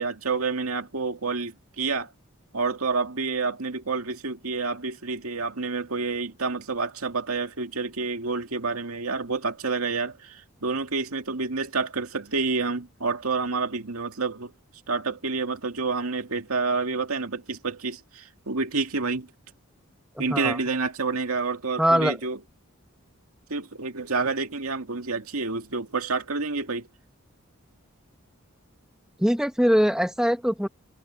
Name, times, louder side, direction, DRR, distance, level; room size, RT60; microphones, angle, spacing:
voice 1, 0.0-2.1 2.5-14.5 14.9-19.3 20.2-22.4 23.5-26.9, right 4 dB, 85° right, 2.2 m, -28 dB
voice 2, 20.1-20.6 21.8-22.2 29.2-30.7, equal, 5° right, 1.5 m, -22 dB
head